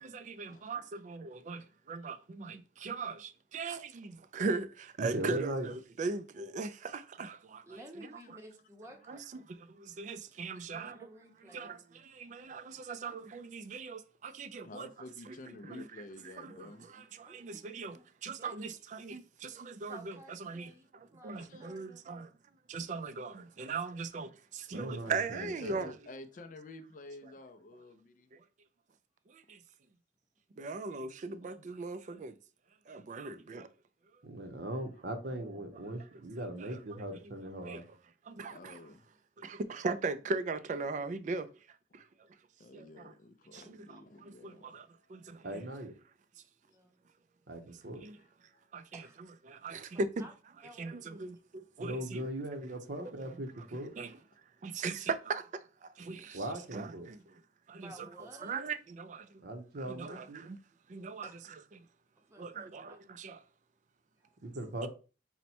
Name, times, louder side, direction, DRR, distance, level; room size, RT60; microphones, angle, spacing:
voice 1, 0.0-8.4 9.1-11.1 11.5-14.9 15.3-15.9 16.2-22.3 22.7-25.9 28.3-28.4 29.3-29.6 30.6-32.4 32.9-33.7 35.9-36.0 36.6-37.3 37.6-37.8 38.3-38.8 39.4-42.1 42.7-43.1 43.5-45.6 48.0-48.2 48.7-50.2 50.8-52.3 53.6-53.7 54.0-54.2 54.6-56.4 56.7-57.4 57.7-59.4 59.8-60.6 60.9-61.3 61.7-61.9 62.4-63.4 64.8-64.9, right 4 dB, 40° right, 0.3 m, -40 dB
voice 2, 5.0-5.7 24.7-25.8 34.2-37.8 45.4-45.9 47.5-48.0 51.8-53.9 56.3-57.1 59.4-60.4 64.4-64.9, right 1 dB, 60° right, 0.7 m, -39 dB
voice 3, 7.6-9.2 10.7-11.8 17.2-17.6 17.9-18.0 18.4-18.5 19.9-20.8 21.1-22.1 46.6-47.0 48.9-49.2 49.9-50.3 50.6-51.1 57.8-58.6 61.2-61.3 62.3-63.0, right 1 dB, 15° right, 0.7 m, -54 dB
voice 4, 12.2-12.7 14.6-17.2 21.3-21.7 25.3-28.3 38.5-39.1 41.9-42.0 42.6-45.5 48.2-48.3 48.5-48.6 56.3-56.6, left 2 dB, 45° left, 0.4 m, -51 dB
4.2 x 2.1 x 4.2 m
head